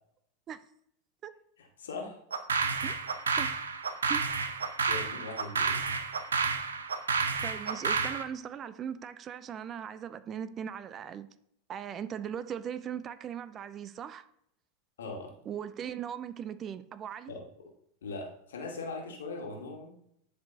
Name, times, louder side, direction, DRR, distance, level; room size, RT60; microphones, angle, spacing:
voice 1, 1.6-2.2 4.8-5.8 15.0-15.3 17.3-17.4 18.0-19.9, left 3 dB, 70° left, 1.6 m, -40 dB
sound 1, 2.3-8.2, right 5 dB, 75° right, 0.7 m, -30 dB
voice 2, 7.4-11.3 11.7-14.2 15.5-17.3, right 8 dB, 30° right, 0.5 m, -39 dB
11.0 x 4.8 x 2.8 m
figure-of-eight pair, 85°, 0 cm